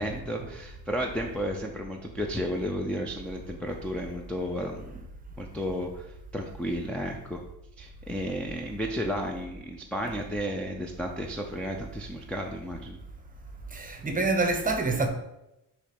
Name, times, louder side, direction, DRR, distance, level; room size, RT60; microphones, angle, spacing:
voice 1, 0.0-5.1 5.4-7.4 7.8-13.0, equal, 5° left, 0.3 m, -33 dB
voice 2, 13.7-15.1, right 3 dB, 20° right, 0.7 m, -27 dB
6.4 x 3.2 x 5.8 m
wide cardioid pair, 180°, 39 cm